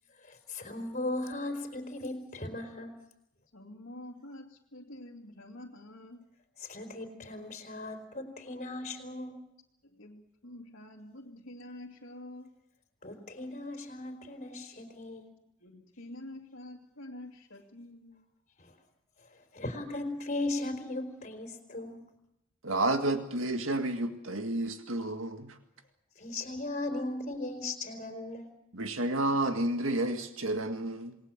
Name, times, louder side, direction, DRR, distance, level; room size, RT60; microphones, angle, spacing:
voice 1, 0.2-2.9 6.6-9.4 13.0-15.2 18.6-18.7 19.3-22.1 26.2-28.5, left 2 dB, 40° left, 5 dB, 4.2 m, -37 dB
voice 2, 3.5-6.2 9.8-12.5 15.6-18.2, left 1 dB, 70° left, -3 dB, 2.4 m, -47 dB
voice 3, 22.6-25.6 28.7-31.2, right 2 dB, 80° right, 7 dB, 1.9 m, -30 dB
28.0 x 19.5 x 7.5 m, 0.83 s
head